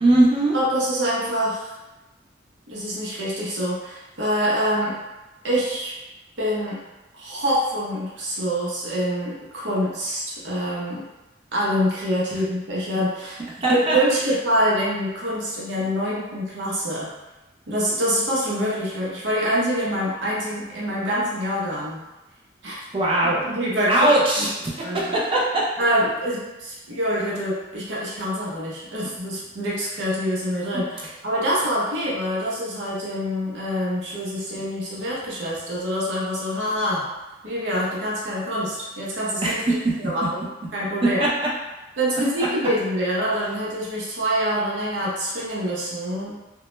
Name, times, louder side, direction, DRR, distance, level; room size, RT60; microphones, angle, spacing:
voice 1, 0.0-0.6 13.6-14.0 22.9-23.4 23.9-24.5 24.9-25.7 39.4-40.1 41.2-41.3 42.4-42.5, right 1 dB, 30° right, -4 dB, 0.4 m, -20 dB
voice 2, 0.5-1.8 2.7-5.0 5.4-5.9 6.4-6.8 7.1-11.0 11.5-13.4 13.7-17.1 17.7-22.0 22.6-22.8 23.4-24.1 24.4-24.5 24.8-25.1 25.8-37.0 37.4-40.5 40.7-41.2 42.0-46.4, equal, 80° right, -6 dB, 0.7 m, -25 dB
2.1 x 2.0 x 3.0 m, 1.0 s
head